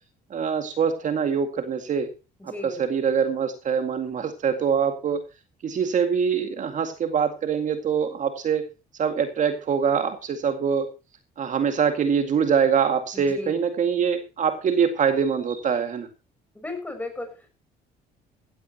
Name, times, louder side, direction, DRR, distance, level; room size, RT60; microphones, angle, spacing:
voice 1, 0.3-2.1 2.6-5.2 5.6-8.7 9.0-10.9 11.4-16.1, right 7 dB, 45° right, 7 dB, 2.0 m, -24 dB
voice 2, 2.4-2.8 13.1-13.5 16.5-17.5, left 2 dB, 10° left, 6 dB, 6.3 m, -35 dB
16.0 x 15.0 x 2.9 m, 0.29 s
cardioid pair, 110°, 17 cm